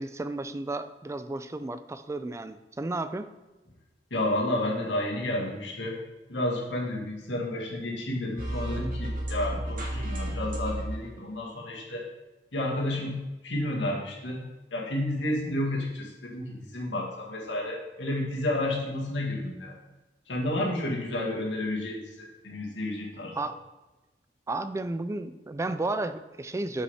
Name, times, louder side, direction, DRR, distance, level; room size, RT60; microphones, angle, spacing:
voice 1, 0.0-3.3 23.4-23.6 24.5-26.8, right 2 dB, 15° right, 11 dB, 0.3 m, -33 dB
voice 2, 4.1-6.0 6.3-12.0 12.5-13.2 13.4-14.4 14.7-19.8 20.3-23.4, left 1 dB, 85° left, -2 dB, 1.9 m, -31 dB
sound 1, 8.4-11.1, right 1 dB, 50° right, 1.8 m, -32 dB
6.4 x 5.4 x 5.7 m, 1.1 s
head